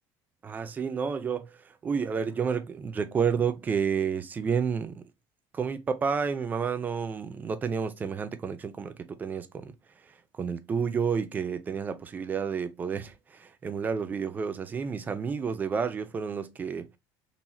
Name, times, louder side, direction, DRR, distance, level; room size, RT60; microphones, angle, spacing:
voice 1, 0.4-1.5 1.8-5.0 5.5-9.7 10.4-13.1 13.4-16.9, right 6 dB, 20° right, 0.4 m, -30 dB
3.9 x 2.8 x 2.8 m
cardioid pair, 155°, 8 cm